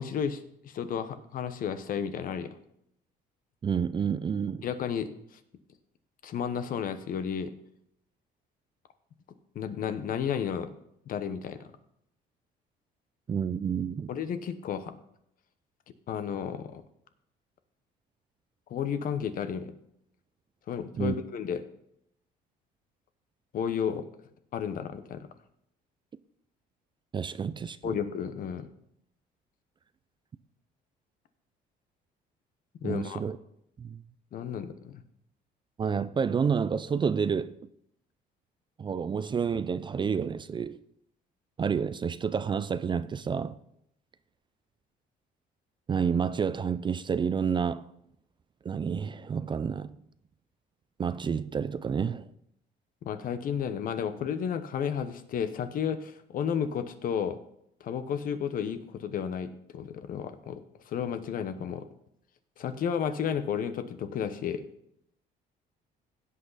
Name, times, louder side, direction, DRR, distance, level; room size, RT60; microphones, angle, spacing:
voice 1, 0.0-2.5 4.6-5.1 6.2-7.5 9.5-10.7 11.1-11.6 14.1-14.9 16.1-16.8 18.7-19.7 20.7-21.6 23.5-24.1 24.5-25.3 27.8-28.7 32.8-33.2 34.3-35.0 53.0-57.4 57.8-60.6 60.9-61.8 62.6-64.7, left 7 dB, 55° left, 1.0 m, -32 dB
voice 2, 3.6-4.6 13.3-14.1 20.9-21.2 27.1-28.0 32.8-33.4 33.8-34.0 35.8-37.5 38.8-40.8 41.6-43.6 45.9-47.8 48.6-50.0 51.0-52.2, right 6 dB, 30° right, 0.4 m, -29 dB
16.5 x 5.6 x 4.1 m
cardioid pair, 110°, 17 cm